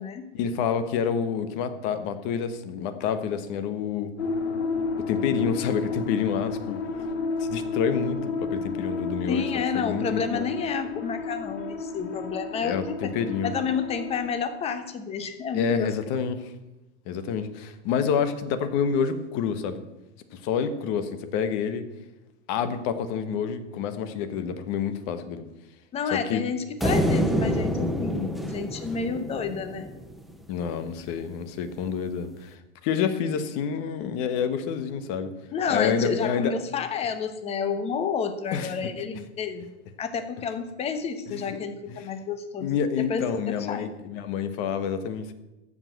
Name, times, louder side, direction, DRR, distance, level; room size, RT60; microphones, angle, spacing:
voice 1, 0.3-4.1 5.0-6.8 7.4-10.5 12.6-13.5 15.5-16.5 17.1-19.8 20.3-21.9 22.5-25.4 26.1-26.4 30.5-35.3 35.7-36.5 38.5-38.7 41.3-41.6 41.9-42.0 42.6-45.3, left 7 dB, 40° left, 10 dB, 1.2 m, -28 dB
sound 1, 4.2-14.3, left 4 dB, 90° left, 2.0 m, -31 dB
voice 2, 9.3-13.1 13.4-15.9 25.9-29.9 35.5-39.7 40.0-42.8 43.1-43.9, left 6 dB, 20° left, 9 dB, 1.0 m, -30 dB
sound 2, 26.8-30.2, equal, ahead, 0.3 m, -27 dB
14.0 x 5.2 x 8.0 m, 1.0 s
supercardioid pair, 150°, 33 cm